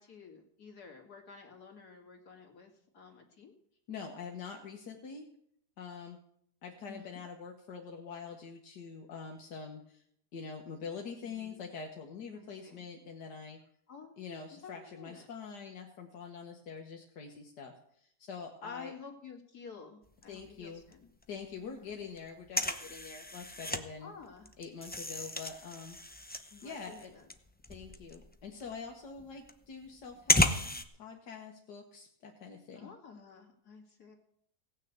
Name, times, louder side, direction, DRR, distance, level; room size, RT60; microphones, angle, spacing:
voice 1, 0.0-3.5 6.9-7.2 11.2-11.7 12.3-12.8 13.9-14.1 14.6-15.3 18.6-21.1 21.6-22.0 24.0-24.5 26.5-27.3 32.7-34.2, left 5 dB, 70° left, 2 dB, 2.8 m, -51 dB
voice 2, 3.9-5.3 5.8-6.2 6.6-10.0 10.3-13.6 14.2-18.9 20.3-20.8 21.3-24.1 24.6-26.0 26.4-27.1 27.7-30.5 31.0-32.9, left 5 dB, 90° left, 1 dB, 1.9 m, -45 dB
sound 1, 20.0-20.9 21.2-21.3 21.5-23.8 24.2-30.8, left 1 dB, 15° left, 0.3 m, -33 dB
17.5 x 6.5 x 8.0 m, 0.70 s
omnidirectional pair, 1.7 m